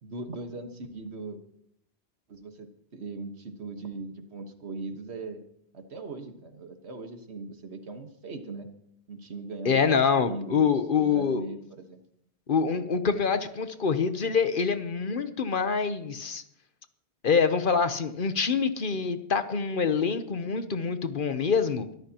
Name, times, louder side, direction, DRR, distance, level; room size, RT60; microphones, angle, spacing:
voice 1, 0.0-1.4 2.3-5.4 5.7-8.7 9.1-10.7 11.0-12.0, right 3 dB, 75° right, 6 dB, 1.7 m, -39 dB
voice 2, 9.6-11.5 12.5-16.4 17.2-21.9, left 5 dB, 55° left, 10 dB, 1.0 m, -25 dB
22.0 x 13.0 x 2.9 m, 0.73 s
omnidirectional pair, 1.1 m